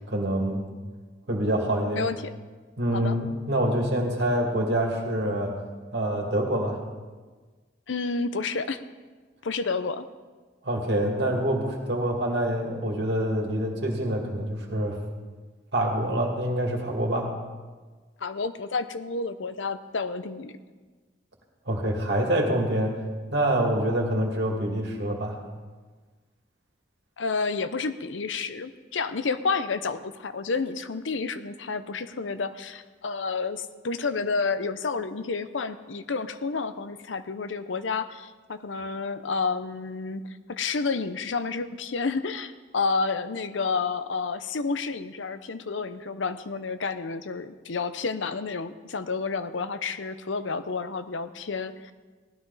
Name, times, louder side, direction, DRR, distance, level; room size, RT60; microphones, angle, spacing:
voice 1, 0.1-0.6 1.3-2.1 2.8-5.5 5.9-6.8 10.6-15.0 15.7-17.3 21.7-23.0 23.3-25.4, right 1 dB, 70° right, 0 dB, 2.4 m, -26 dB
voice 2, 7.9-8.8 9.4-10.1 18.2-20.5 27.2-40.2 40.5-51.9, left 4 dB, 90° left, 11 dB, 0.7 m, -30 dB
16.5 x 12.0 x 4.1 m, 1.4 s
head